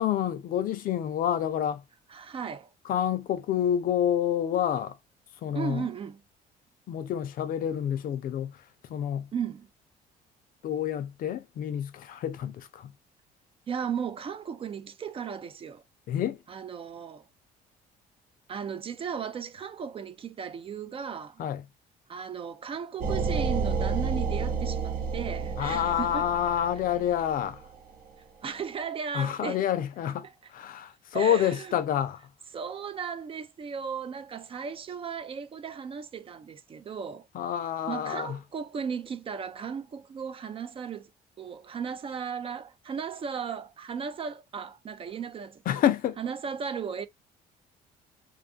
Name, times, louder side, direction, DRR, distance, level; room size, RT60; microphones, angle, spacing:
voice 1, 0.0-1.8 2.8-5.0 5.4-5.9 6.9-9.3 10.6-12.9 16.1-16.4 21.4-21.6 25.6-27.6 29.1-32.2 37.3-38.4 45.7-46.2, left 10 dB, 55° left, 0.5 m, -28 dB
voice 2, 2.1-2.7 5.5-6.2 9.3-9.7 13.7-15.8 16.5-17.2 18.5-21.4 22.1-26.3 28.4-29.6 31.1-31.7 32.5-37.3 37.9-41.1 41.4-45.6 46.2-47.1, right 6 dB, 35° right, 0.4 m, -36 dB
sound 1, 23.0-27.8, right 5 dB, 60° right, 0.7 m, -30 dB
2.6 x 2.3 x 2.4 m
cardioid pair, 110°, 17 cm